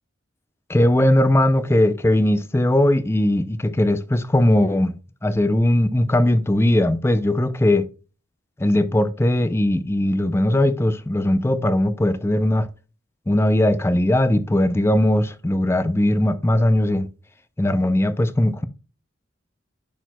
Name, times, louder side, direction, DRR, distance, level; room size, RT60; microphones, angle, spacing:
voice 1, 0.7-4.9 5.2-7.9 8.6-12.7 13.3-17.1 17.6-18.6, left 1 dB, 15° left, 0.4 m, -19 dB
10.0 x 4.5 x 2.2 m
head